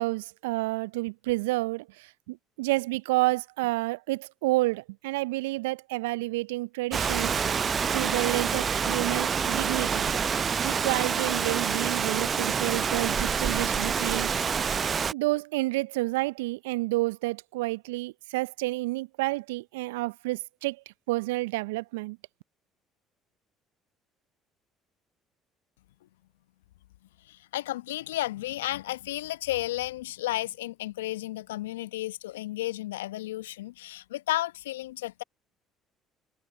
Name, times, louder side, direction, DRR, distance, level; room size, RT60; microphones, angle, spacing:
voice 1, 0.0-7.3 7.9-10.1 10.6-14.3 15.1-20.8 21.1-22.2, right 21 dB, 75° right, 0.6 m, -29 dB
Rain, 6.9-15.1, right 6 dB, 40° right, 0.7 m, -27 dB
voice 2, 27.2-35.2, left 15 dB, 75° left, 0.9 m, -33 dB
figure-of-eight pair, 55°, 0 cm